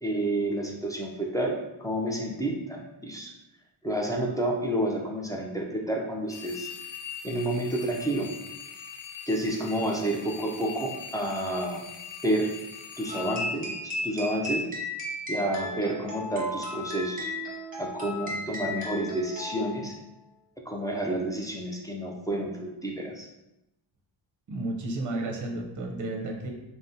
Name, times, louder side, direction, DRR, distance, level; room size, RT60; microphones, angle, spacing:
voice 1, 0.0-3.3 3.8-6.7 7.2-8.3 9.3-11.8 12.2-12.5 13.0-13.7 14.0-14.6 15.3-17.3 17.8-19.9 20.7-22.5 22.8-23.3, right 1 dB, 10° left, -1 dB, 0.4 m, -29 dB
sound 1, 6.3-14.5, left 7 dB, 70° left, 0.5 m, -42 dB
sound 2, 13.1-19.9, left 1 dB, 15° right, 1.0 m, -35 dB
voice 2, 24.5-26.5, right 2 dB, 40° right, 1 dB, 0.6 m, -32 dB
3.5 x 2.1 x 2.6 m, 0.90 s
cardioid pair, 75°, 48 cm